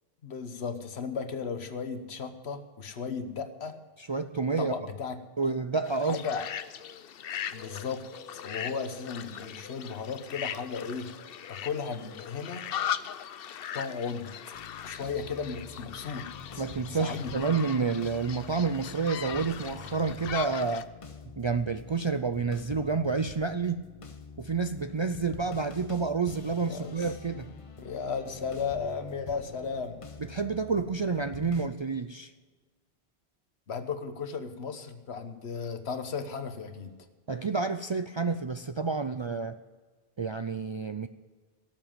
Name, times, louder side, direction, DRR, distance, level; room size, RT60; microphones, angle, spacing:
voice 1, 0.2-3.8 4.6-5.2 6.0-6.5 7.5-8.1 8.3-11.1 11.5-12.6 13.7-14.3 14.8-16.6 16.9-17.6 26.7-27.1 27.8-30.0 33.7-36.9, left 5 dB, 90° left, 9 dB, 1.4 m, -35 dB
voice 2, 4.0-4.7 5.4-6.2 16.6-20.9 21.4-23.9 24.4-27.5 30.2-32.3 37.3-39.6 40.2-41.1, right 4 dB, 45° right, 9 dB, 0.3 m, -29 dB
sound 1, 5.8-20.8, left 9 dB, 65° left, 0.8 m, -39 dB
sound 2, 14.5-31.7, left 6 dB, 35° left, 0.8 m, -46 dB
17.5 x 7.4 x 7.5 m, 1.4 s
omnidirectional pair, 1.1 m